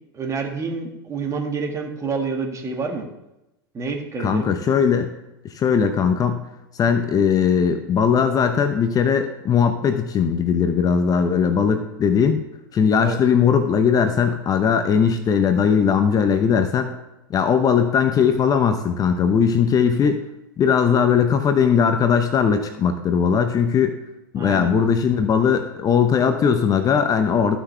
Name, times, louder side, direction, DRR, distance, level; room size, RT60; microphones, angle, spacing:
voice 1, 0.1-3.1 3.7-4.5 13.0-13.2 24.4-24.7, right 4 dB, 25° right, 3 dB, 1.8 m, -28 dB
voice 2, 4.2-5.1 5.4-6.4 6.7-12.4 12.7-16.9 17.3-20.2 20.6-24.0 24.3-27.6, left 7 dB, 30° left, 8 dB, 0.8 m, -19 dB
14.0 x 6.0 x 3.4 m, 0.91 s
hypercardioid pair, 100°, 12 cm